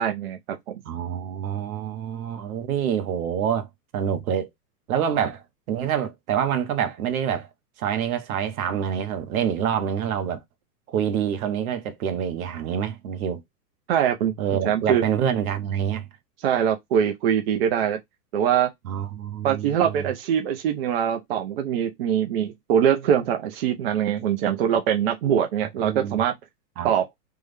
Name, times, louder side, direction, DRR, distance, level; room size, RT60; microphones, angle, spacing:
voice 1, 0.0-0.8 13.9-14.3 14.6-15.0 16.4-18.0 18.3-18.7 19.4-26.3 26.8-27.1, right 9 dB, 40° right, 0.5 m, -23 dB
voice 2, 0.8-3.7 3.9-4.5 4.9-7.5 7.8-10.4 10.9-13.4 14.4-16.1 18.8-20.1 25.8-26.2 26.8-26.9, right 9 dB, 60° right, 1.0 m, -26 dB
3.4 x 2.1 x 3.2 m
hypercardioid pair, 145°, 48 cm